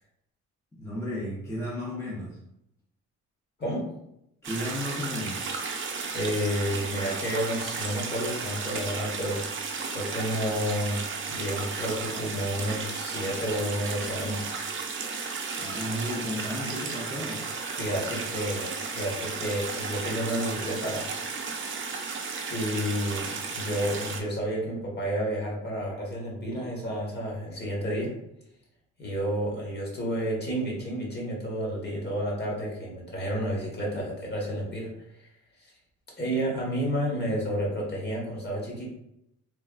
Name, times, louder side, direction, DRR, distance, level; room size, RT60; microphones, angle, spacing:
voice 1, 0.7-2.4 4.4-5.5 15.6-17.5, left 1 dB, 10° left, -6 dB, 0.6 m, -34 dB
voice 2, 3.6-4.0 6.1-9.4 9.9-14.5 17.8-18.7 18.9-21.1 22.5-28.2 29.0-34.9 35.6-35.7 36.2-38.8, equal, 35° left, -4 dB, 1.3 m, -30 dB
sound 1, 4.4-24.2, right 4 dB, 40° right, 0.6 m, -34 dB
3.2 x 2.3 x 2.4 m, 0.81 s
cardioid pair, 90°, 30 cm